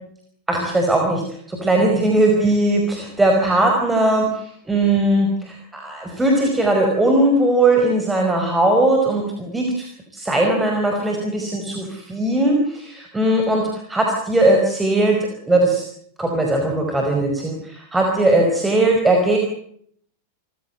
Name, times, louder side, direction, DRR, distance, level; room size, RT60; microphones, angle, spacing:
voice 1, 0.5-1.2 1.5-15.2 15.5-15.8 16.2-19.4, right 2 dB, 10° right, 2 dB, 5.2 m, -19 dB
29.0 x 15.5 x 8.2 m, 0.65 s
figure-of-eight pair, 90°, 0 cm